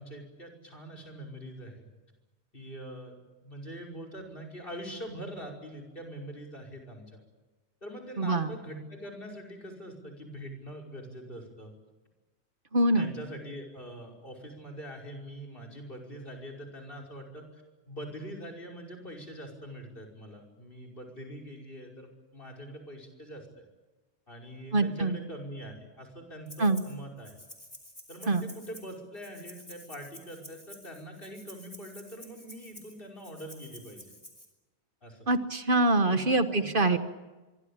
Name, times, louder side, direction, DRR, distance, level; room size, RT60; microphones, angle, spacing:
voice 1, 0.0-1.9 2.5-3.1 3.4-7.2 7.8-11.7 13.0-23.6 24.3-27.3 28.1-34.1 35.0-35.3 36.1-37.0, equal, 55° left, 5 dB, 5.8 m, -43 dB
voice 2, 8.2-8.5 12.7-13.1 24.7-25.2 26.6-26.8 28.3-28.5 35.3-37.0, right 2 dB, 50° right, 10 dB, 1.4 m, -25 dB
Rattle (instrument), 26.5-27.0 27.2-34.5, left 1 dB, 20° left, 4.9 m, -50 dB
25.0 x 24.0 x 8.8 m, 1.2 s
omnidirectional pair, 1.1 m